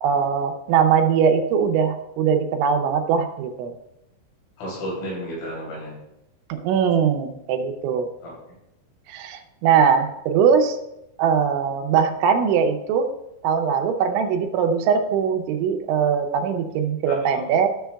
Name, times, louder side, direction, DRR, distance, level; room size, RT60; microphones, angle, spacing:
voice 1, 0.0-3.7 6.5-8.1 9.1-10.8 11.2-13.1 13.4-17.7, right 6 dB, 80° right, 6 dB, 3.0 m, -21 dB
voice 2, 4.6-5.9 8.2-8.4 17.1-17.6, equal, 80° left, -4 dB, 5.5 m, -33 dB
13.5 x 7.0 x 2.3 m, 0.87 s
omnidirectional pair, 5.5 m